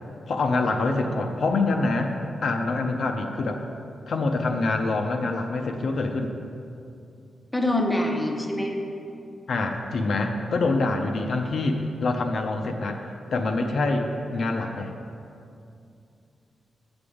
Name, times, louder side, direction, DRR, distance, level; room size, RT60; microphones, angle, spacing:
voice 1, 0.3-2.1 2.4-3.6 4.1-6.3 9.5-13.0 13.3-14.9, left 3 dB, 55° left, 4 dB, 0.6 m, -25 dB
voice 2, 7.5-8.8, left 1 dB, 5° left, 1 dB, 0.7 m, -25 dB
8.0 x 7.0 x 5.0 m, 2.5 s
wide cardioid pair, 165°, 0 cm